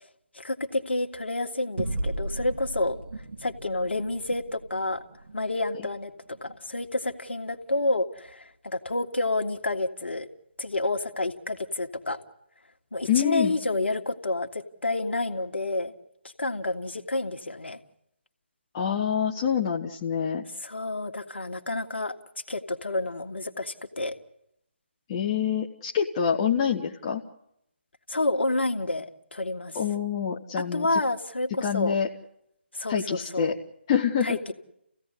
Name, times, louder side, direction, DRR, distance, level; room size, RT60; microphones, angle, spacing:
voice 1, 0.3-3.0 3.4-5.0 5.3-6.1 6.4-10.3 10.6-12.2 12.9-15.9 16.4-17.8 20.6-22.1 22.5-24.2 28.1-29.8 30.7-32.0 32.7-33.6 34.2-34.5, left 2 dB, 70° left, 4 dB, 1.9 m, -29 dB
sound 1, 1.8-6.6, right 1 dB, 60° right, 2.3 m, -36 dB
voice 2, 13.1-13.6 18.7-20.4 25.1-27.2 29.7-31.0 31.6-32.1 32.9-33.5 33.9-34.4, left 8 dB, 25° left, 0 dB, 1.0 m, -26 dB
29.5 x 16.0 x 8.3 m, 0.81 s
figure-of-eight pair, 155°, 6 cm